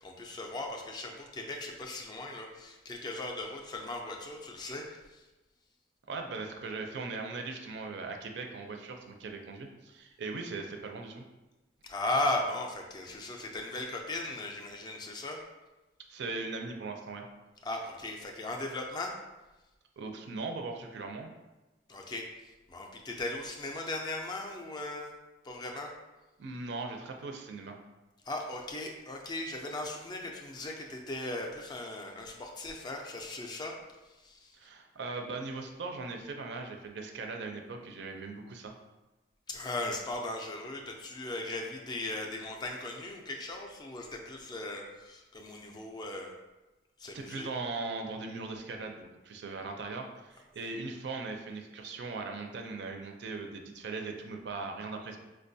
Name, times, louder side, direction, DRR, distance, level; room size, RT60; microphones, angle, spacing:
voice 1, 0.0-5.0 11.8-15.4 17.6-19.1 21.9-22.3 22.7-25.1 25.4-25.9 28.3-33.7 34.2-34.5 39.5-46.3 47.0-47.5, left 2 dB, 20° left, 1 dB, 0.3 m, -37 dB
voice 2, 6.1-11.2 16.1-17.3 20.0-21.3 26.4-27.8 34.5-38.7 47.1-55.2, right 3 dB, 65° right, 3 dB, 0.4 m, -39 dB
4.7 x 2.2 x 2.6 m, 1.1 s
head